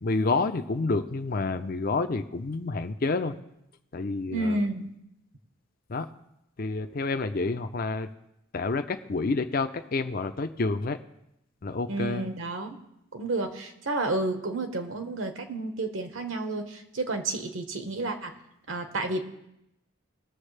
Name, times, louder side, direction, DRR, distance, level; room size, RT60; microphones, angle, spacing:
voice 1, 0.0-3.3 3.9-4.6 5.9-6.1 6.6-8.1 8.5-11.0 11.6-12.2, left 3 dB, 45° left, 7 dB, 0.5 m, -29 dB
voice 2, 4.3-4.9 11.9-12.8 13.1-18.3 18.7-19.2, right 2 dB, 70° right, 6 dB, 1.3 m, -31 dB
20.5 x 7.1 x 3.3 m, 0.83 s
head